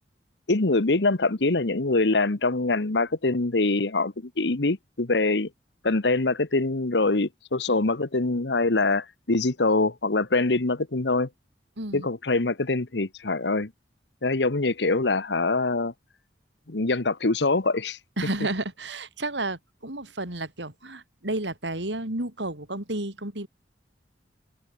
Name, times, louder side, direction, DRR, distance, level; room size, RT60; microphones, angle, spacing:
voice 1, 0.5-5.5 5.8-11.3 11.9-13.7 14.2-15.9 16.7-18.0, left 3 dB, 70° left, 1.3 m, -24 dB
voice 2, 11.8-12.1 18.2-23.5, right 2 dB, 85° right, 5.7 m, -31 dB
head